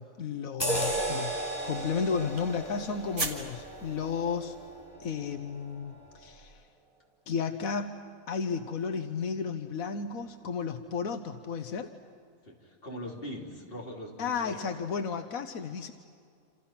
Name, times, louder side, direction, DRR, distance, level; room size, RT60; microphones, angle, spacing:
voice 1, 0.0-1.3 1.6-4.6 5.0-6.6 7.3-11.9 14.2-15.9, left 5 dB, 90° left, 7 dB, 1.4 m, -33 dB
sound 1, 0.6-5.6 6.0-6.2, right 1 dB, 15° left, 5.3 m, -37 dB
sound 2, 0.7-6.2, right 1 dB, 80° right, 3.7 m, -39 dB
sound 3, 1.4-4.9, right 2 dB, 40° right, 2.4 m, -41 dB
voice 2, 12.4-14.7, left 1 dB, 40° left, -1 dB, 3.7 m, -41 dB
28.0 x 28.0 x 5.8 m, 2.3 s
omnidirectional pair, 1.4 m